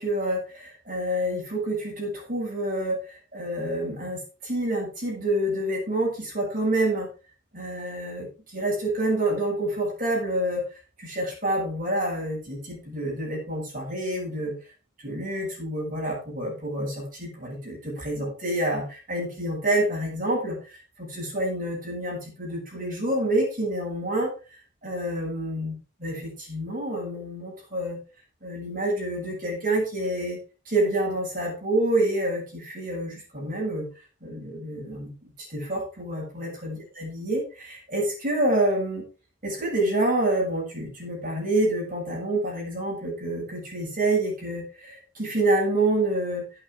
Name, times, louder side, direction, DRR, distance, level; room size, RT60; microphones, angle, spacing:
voice 1, 0.0-7.1 7.5-14.5 15.0-28.0 28.4-30.4 30.7-33.9 34.2-35.1 35.4-39.1 39.4-46.4, right 1 dB, 40° right, -3 dB, 7.4 m, -28 dB
10.5 x 9.1 x 4.9 m, 0.34 s
head